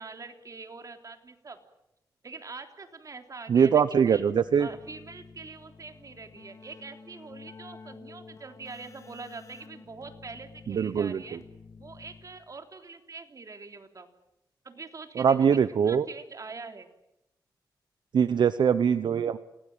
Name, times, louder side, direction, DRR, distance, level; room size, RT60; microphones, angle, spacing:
voice 1, 0.0-1.6 2.2-4.2 4.6-11.4 11.8-14.1 14.6-15.4 15.8-16.9, right 4 dB, 45° right, 6 dB, 3.5 m, -44 dB
voice 2, 3.5-4.7 10.7-11.4 15.2-16.1 18.1-19.4, right 7 dB, 80° right, 13 dB, 0.9 m, -23 dB
Keyboard (musical), 4.2-12.6, left 4 dB, 45° left, 3.6 m, -50 dB
28.0 x 19.5 x 9.1 m, 0.86 s
cardioid pair, 80°, 8 cm